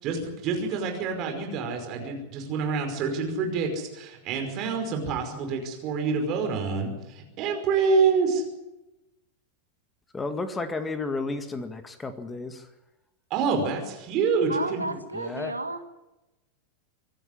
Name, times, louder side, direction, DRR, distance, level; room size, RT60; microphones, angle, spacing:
voice 1, 0.0-8.4 13.3-14.9, right 5 dB, 40° right, 4 dB, 5.3 m, -27 dB
voice 2, 10.1-12.6 15.1-15.5, left 3 dB, 15° left, 9 dB, 1.9 m, -32 dB
voice 3, 14.5-15.9, right 2 dB, 85° right, 8 dB, 1.7 m, -32 dB
25.5 x 12.5 x 9.9 m, 1.0 s
figure-of-eight pair, 90°, 0 cm